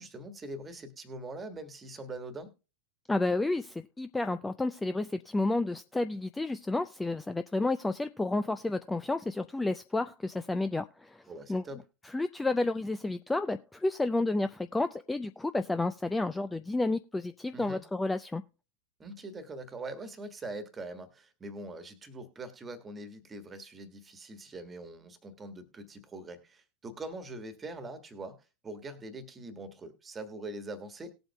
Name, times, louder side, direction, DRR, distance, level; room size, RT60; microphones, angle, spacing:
voice 1, 0.0-2.5 11.3-11.8 17.5-17.8 19.0-31.1, right 2 dB, 15° right, 1.5 m, -43 dB
voice 2, 3.1-11.2 11.5-11.6 12.0-18.4, left 2 dB, 10° left, 0.4 m, -31 dB
19.0 x 7.9 x 2.2 m
figure-of-eight pair, 90°, 0 cm